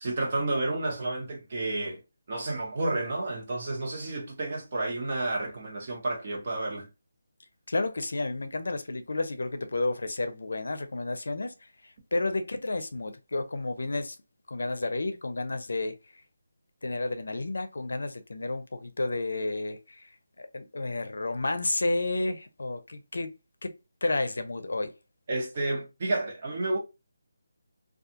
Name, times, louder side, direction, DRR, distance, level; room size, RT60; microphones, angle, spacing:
voice 1, 0.0-2.0 2.3-6.9 25.3-26.8, right 2 dB, 35° right, 1.0 m, -31 dB
voice 2, 7.7-11.5 12.1-14.2 14.5-16.0 16.8-20.0 20.4-23.3 23.6-23.7 24.0-24.9, left 2 dB, 75° left, 0.6 m, -31 dB
2.4 x 2.4 x 2.7 m
hypercardioid pair, 175°, 0 cm